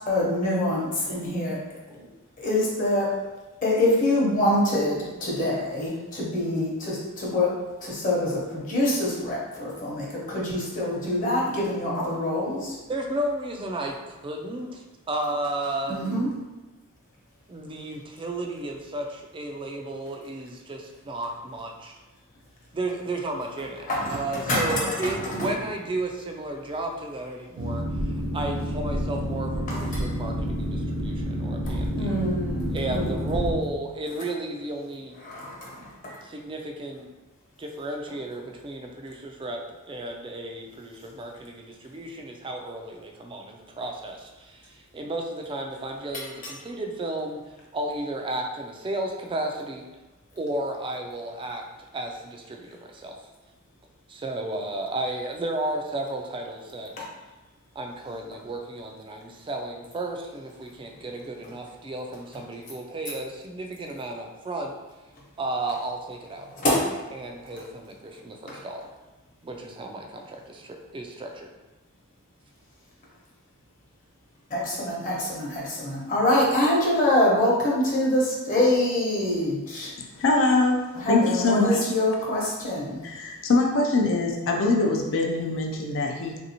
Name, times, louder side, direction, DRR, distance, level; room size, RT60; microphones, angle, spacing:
voice 1, 0.1-1.6 1.9-2.1 2.4-3.2 3.6-7.5 7.8-12.8 15.9-16.3 23.9-25.1 25.4-25.5 29.7-30.2 31.9-33.5 35.2-36.2 57.0-57.1 66.6-66.9 68.5-68.6 74.5-79.9 80.9-83.0, left 1 dB, 40° left, -5 dB, 0.9 m, -25 dB
voice 2, 12.9-16.3 17.5-22.0 22.7-27.8 28.3-32.1 32.7-35.2 36.2-37.1 37.6-39.6 39.9-49.8 50.3-51.6 51.9-53.1 54.1-57.1 57.8-64.8 65.4-66.5 67.1-68.9 69.4-71.5, right 2 dB, 25° right, 2 dB, 0.3 m, -33 dB
Boat Water vehicle, 27.6-33.6, equal, 85° right, 0.5 m, -29 dB
voice 3, 80.2-80.8 81.1-81.9 83.0-86.4, left 3 dB, 60° left, 2 dB, 0.4 m, -23 dB
3.3 x 2.6 x 2.8 m, 1.1 s
head